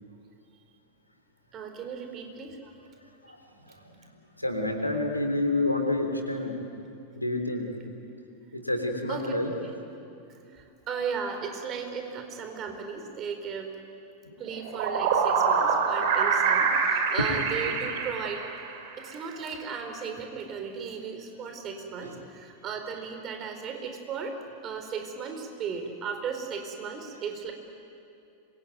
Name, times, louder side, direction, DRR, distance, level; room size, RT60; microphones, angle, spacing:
voice 1, 1.5-2.7 9.1-9.7 10.3-13.7 14.4-18.4 19.0-27.5, right 6 dB, 30° right, 5 dB, 4.2 m, -36 dB
voice 2, 3.6-6.6 7.2-7.7 8.5-9.5 14.2-14.3 22.0-22.1, left 2 dB, 85° left, 4 dB, 3.6 m, -29 dB
sound 1, 14.5-18.9, right 6 dB, 50° right, 3.5 m, -25 dB
26.5 x 23.0 x 9.4 m, 2.6 s
figure-of-eight pair, 90°, 0 cm